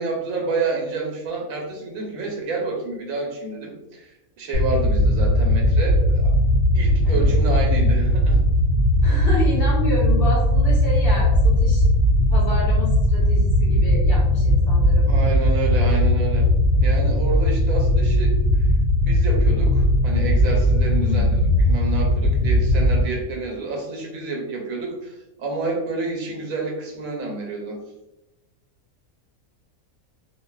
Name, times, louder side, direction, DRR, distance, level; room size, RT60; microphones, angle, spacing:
voice 1, 0.0-4.1 4.4-6.3 6.7-8.4 15.1-16.5 16.8-18.4 19.1-21.3 21.6-27.8, right 3 dB, 80° right, 0 dB, 1.1 m, -29 dB
sound 1, 4.5-23.0, left 1 dB, 70° left, 0.9 m, -18 dB
voice 2, 7.0-7.3 9.0-11.9 12.3-15.3 21.0-21.5, left 1 dB, 45° left, -7 dB, 1.1 m, -30 dB
2.5 x 2.3 x 2.2 m, 0.96 s
omnidirectional pair, 1.5 m